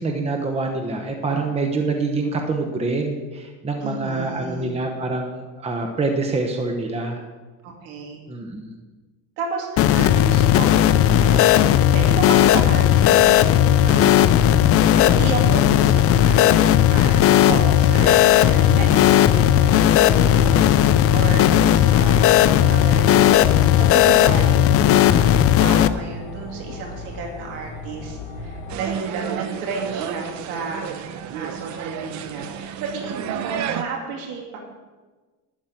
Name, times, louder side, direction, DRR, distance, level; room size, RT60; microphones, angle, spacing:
voice 1, 0.0-7.2 8.3-8.7 18.7-18.9, right 3 dB, 15° right, 3 dB, 0.9 m, -26 dB
voice 2, 3.8-4.8 7.6-8.2 9.4-13.5 13.8-14.4 15.0-30.8 31.3-34.6, right 4 dB, 85° right, 0 dB, 2.6 m, -32 dB
sound 1, 9.8-25.9, left 11 dB, 40° left, 0.5 m, -15 dB
sound 2, 12.1-28.8, left 3 dB, 75° left, 2.2 m, -36 dB
sound 3, 28.7-33.8, right 9 dB, 55° right, 0.8 m, -31 dB
12.0 x 5.4 x 8.9 m, 1.3 s
cardioid pair, 145°, 35 cm